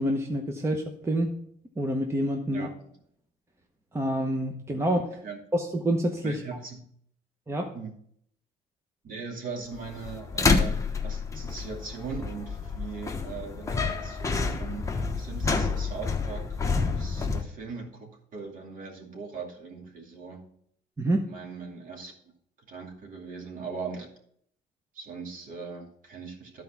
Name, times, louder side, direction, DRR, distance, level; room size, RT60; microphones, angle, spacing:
voice 1, 0.0-1.3 1.8-2.7 3.9-5.2 5.5-6.4 7.5-7.7 21.0-21.3, right 1 dB, 15° right, 3 dB, 0.9 m, -27 dB
voice 2, 6.2-6.9 7.7-7.9 9.0-20.4 21.3-22.1 22.7-24.1 24.9-26.6, right 5 dB, 50° right, 0 dB, 2.5 m, -40 dB
sound 1, 9.7-17.4, left 4 dB, 20° left, 1.1 m, -28 dB
11.5 x 4.7 x 5.8 m, 0.68 s
cardioid pair, 110°, 17 cm